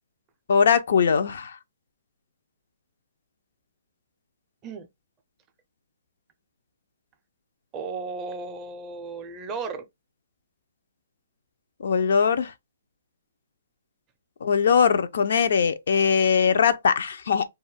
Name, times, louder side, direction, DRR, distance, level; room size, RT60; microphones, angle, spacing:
voice 1, 0.5-1.6 11.8-12.5 14.4-17.5, left 6 dB, 65° left, 0.4 m, -21 dB
voice 2, 7.7-9.9, right 4 dB, 20° right, 0.4 m, -34 dB
2.2 x 2.0 x 3.2 m
hypercardioid pair, 150°, 0 cm